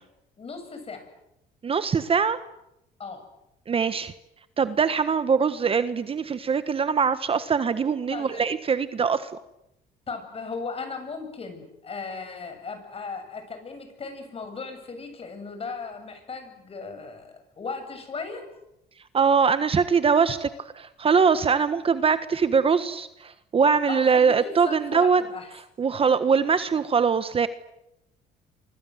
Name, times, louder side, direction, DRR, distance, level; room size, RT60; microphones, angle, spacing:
voice 1, 0.4-1.0 3.0-3.3 8.1-8.4 10.1-18.4 23.9-25.5, left 4 dB, 35° left, 7 dB, 7.9 m, -37 dB
voice 2, 1.6-2.4 3.7-4.1 4.6-9.3 19.1-20.5 20.7-25.2 25.8-27.5, right 6 dB, 35° right, 12 dB, 1.3 m, -22 dB
29.0 x 25.5 x 8.0 m, 0.86 s
cardioid pair, 110°, 17 cm